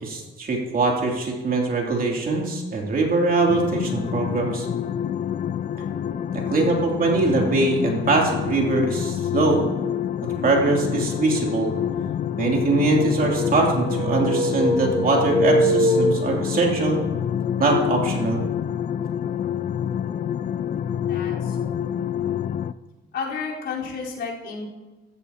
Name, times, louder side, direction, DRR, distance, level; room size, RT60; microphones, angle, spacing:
voice 1, 0.0-4.7 6.3-9.6 10.4-11.7 12.4-17.0 17.6-18.4, right 3 dB, 45° right, -1 dB, 3.0 m, -22 dB
sound 1, 3.5-22.7, left 9 dB, 40° left, 0.4 m, -27 dB
sound 2, 13.2-16.8, right 1 dB, 20° right, 2.7 m, -23 dB
voice 2, 21.1-21.6 22.3-22.5 23.1-24.7, left 5 dB, 65° left, -5 dB, 4.3 m, -32 dB
15.0 x 13.5 x 3.0 m, 1.2 s
cardioid pair, 95°, 20 cm